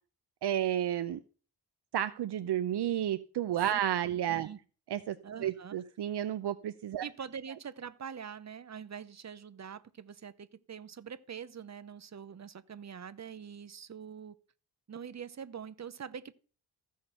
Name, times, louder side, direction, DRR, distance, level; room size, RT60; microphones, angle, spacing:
voice 1, 0.4-1.2 1.9-4.5 4.9-5.2 5.4-7.0, right 11 dB, 75° right, 0.7 m, -31 dB
voice 2, 5.2-5.8 7.0-14.3 14.9-16.3, right 7 dB, 40° right, 0.8 m, -44 dB
14.5 x 6.6 x 5.6 m
wide cardioid pair, 105°, 41 cm